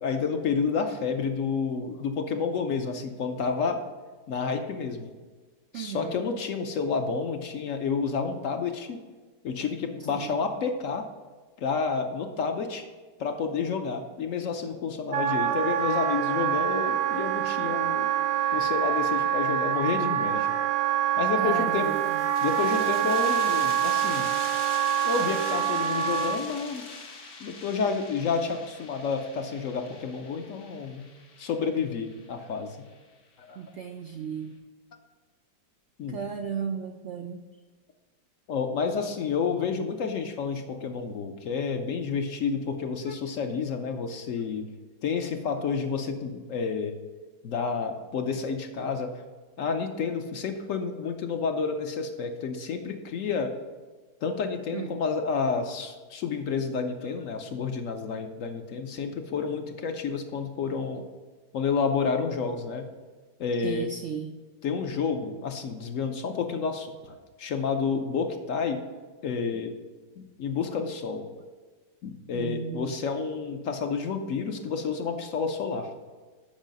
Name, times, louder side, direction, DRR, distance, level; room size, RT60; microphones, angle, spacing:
voice 1, 0.0-3.8 4.3-5.1 5.7-9.0 9.4-11.1 11.6-12.8 13.2-18.1 18.5-20.6 21.2-21.9 22.4-24.3 25.0-26.8 27.4-31.0 31.4-32.8 33.4-33.6 36.0-36.2 38.5-44.7 45.0-47.0 47.4-49.2 49.6-53.6 54.2-61.1 61.5-62.9 63.4-63.9 64.6-68.8 69.2-69.7 70.2-71.2 72.0-75.9, left 5 dB, 60° left, 6 dB, 0.9 m, -30 dB
voice 2, 5.7-6.3 10.1-10.4 21.4-22.3 33.6-34.5 36.1-37.4 43.0-43.2 54.7-55.0 63.6-64.4 72.3-73.0, right 7 dB, 80° right, 5 dB, 0.6 m, -35 dB
Wind instrument woodwind instrument, 15.1-26.4, right 10 dB, 65° right, 0.9 m, -26 dB
sound 1, 21.6-32.9, left 4 dB, 80° left, 1.9 m, -43 dB
7.3 x 5.5 x 5.2 m, 1.3 s
omnidirectional pair, 1.8 m